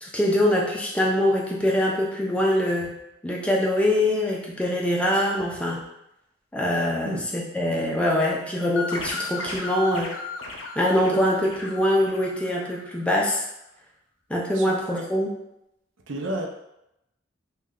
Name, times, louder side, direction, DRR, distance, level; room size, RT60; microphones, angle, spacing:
voice 1, 0.0-2.9 3.2-5.8 6.5-10.1 10.8-13.4 14.3-15.3, left 1 dB, 5° left, -3 dB, 0.5 m, -23 dB
sound 1, 8.8-13.1, left 2 dB, 80° left, 0.6 m, -35 dB
voice 2, 14.5-15.0 16.1-16.5, right 1 dB, 75° right, 1 dB, 0.6 m, -31 dB
3.1 x 2.3 x 3.6 m, 0.83 s
head